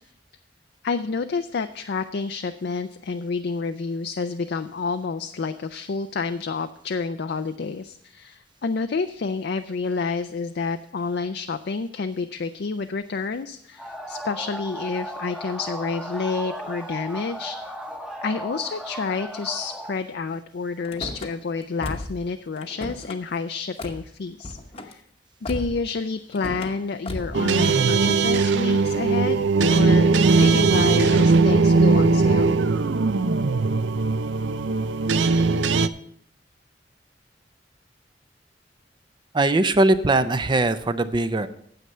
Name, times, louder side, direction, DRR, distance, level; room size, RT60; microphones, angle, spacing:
voice 1, 0.8-17.6 18.2-25.0 25.4-30.1 30.4-32.6, left 4 dB, 65° left, 8 dB, 0.5 m, -29 dB
sound 1, 13.8-20.0, right 1 dB, 5° right, 0.9 m, -35 dB
Car / Slam, 20.8-21.3 21.8-22.2 22.6-23.2 23.8-24.0 24.4-24.9 25.5-25.9 26.3-26.7 27.1-27.4, left 1 dB, 35° left, 0.9 m, -34 dB
sound 2, 27.3-35.9, right 4 dB, 85° right, 0.5 m, -19 dB
voice 2, 39.3-41.5, right 2 dB, 25° right, 12 dB, 0.5 m, -20 dB
9.3 x 8.0 x 5.5 m, 0.65 s
head